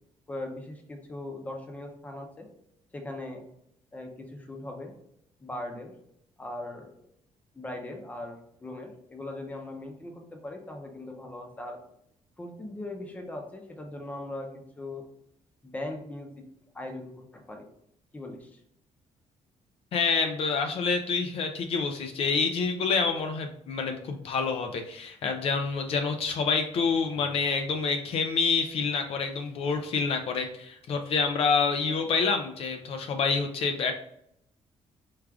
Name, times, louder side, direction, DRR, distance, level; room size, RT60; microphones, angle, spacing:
voice 1, 0.3-2.5 2.9-3.5 3.9-4.9 5.4-5.9 6.4-6.9 7.5-11.8 12.4-15.0 15.6-16.4 16.7-17.7 18.1-18.6, left 1 dB, 15° left, 3 dB, 0.6 m, -39 dB
voice 2, 19.9-33.9, left 5 dB, 55° left, 5 dB, 0.4 m, -27 dB
4.6 x 2.4 x 3.5 m, 0.74 s
cardioid pair, 165°, 12 cm